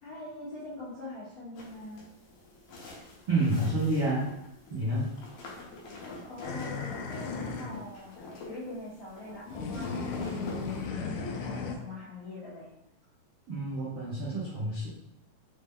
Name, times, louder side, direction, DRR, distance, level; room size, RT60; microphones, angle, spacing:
voice 1, 0.0-2.1 6.2-12.7, left 2 dB, 55° left, -11 dB, 1.4 m, -43 dB
sound 1, 1.6-10.8, left 2 dB, 70° left, 2.1 m, -44 dB
voice 2, 3.3-4.2 4.7-5.1 13.5-14.9, right 2 dB, 90° right, -9 dB, 1.1 m, -28 dB
sound 2, 6.4-7.8 9.5-11.8, left 5 dB, 85° left, 1.6 m, -36 dB
5.7 x 2.2 x 3.6 m, 0.82 s
omnidirectional pair, 3.8 m